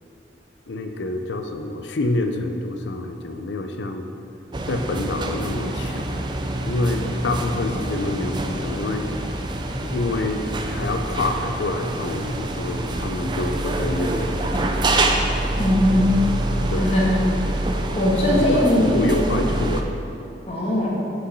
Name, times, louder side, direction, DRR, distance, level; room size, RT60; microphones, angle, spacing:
voice 1, 0.7-4.1 4.7-6.2 6.7-9.1 9.8-14.7 16.7-16.9 18.1-18.6 18.9-19.9, left 2 dB, 80° left, 6 dB, 0.5 m, -27 dB
sound 1, 4.5-19.8, right 1 dB, 25° right, 0.4 m, -26 dB
voice 2, 15.6-16.1 16.7-17.2 17.9-19.0 20.5-21.1, left 1 dB, 35° left, -5 dB, 1.4 m, -20 dB
7.7 x 5.6 x 4.1 m, 2.8 s
head